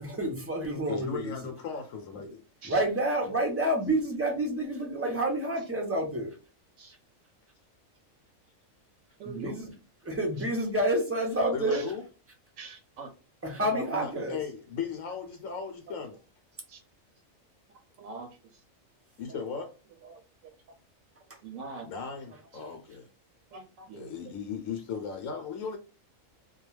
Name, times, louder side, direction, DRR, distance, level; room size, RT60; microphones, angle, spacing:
voice 1, 0.0-1.4 2.7-6.3 9.2-9.7 10.0-11.9 13.4-14.4, right 1 dB, 20° right, 0.4 m, -29 dB
voice 2, 0.9-2.4 11.5-12.0 14.0-16.2 19.2-19.7 21.8-23.1 23.9-25.8, left 6 dB, 80° left, 1.0 m, -37 dB
voice 3, 9.2-9.6 11.7-11.9 12.6-13.1 13.5-14.3 16.7-16.8 18.0-18.6 19.3-19.4 20.0-20.5 21.4-21.9 22.5-22.6 23.5-24.2, right 4 dB, 75° right, 0.9 m, -42 dB
2.3 x 2.2 x 3.1 m
omnidirectional pair, 1.4 m